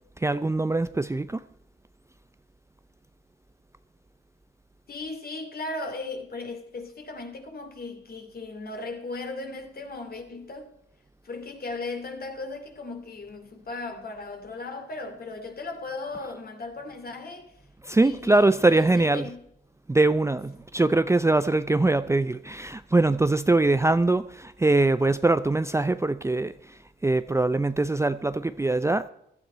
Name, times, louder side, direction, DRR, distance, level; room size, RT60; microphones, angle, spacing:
voice 1, 0.2-1.4 17.8-19.3 19.9-29.1, right 2 dB, 15° right, 0.5 m, -23 dB
voice 2, 4.9-10.7 11.2-17.5 18.0-19.4, left 3 dB, 45° left, 2.8 m, -37 dB
15.5 x 12.5 x 4.4 m
cardioid pair, 65°, 21 cm